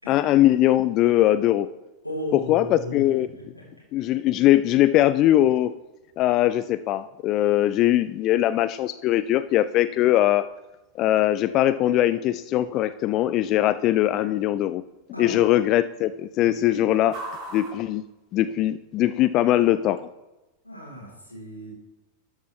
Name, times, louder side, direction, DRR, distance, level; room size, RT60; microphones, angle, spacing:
voice 1, 0.1-1.7 2.3-3.3 3.9-5.7 6.2-10.5 11.0-14.8 15.2-17.1 17.5-18.0 18.3-20.1, left 13 dB, 35° left, 14 dB, 0.3 m, -21 dB
voice 2, 2.0-3.6 15.1-15.6 16.4-16.8 20.6-21.7, left 1 dB, 85° left, -3 dB, 3.4 m, -36 dB
sound 1, 4.1-18.9, right 2 dB, 35° right, 3.2 m, -49 dB
12.0 x 8.2 x 3.2 m, 1.1 s
figure-of-eight pair, 90°, 0 cm